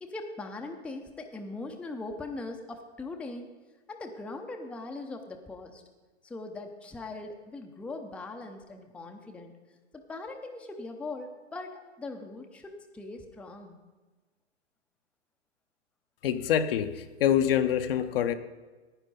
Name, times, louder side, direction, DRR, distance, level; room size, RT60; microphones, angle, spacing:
voice 1, 0.0-3.5 3.9-5.8 6.2-9.5 9.9-13.8, left 2 dB, 5° left, 3 dB, 0.6 m, -40 dB
voice 2, 16.2-18.3, left 9 dB, 55° left, 9 dB, 0.8 m, -26 dB
10.5 x 9.6 x 5.3 m, 1.3 s
hypercardioid pair, 115°, 34 cm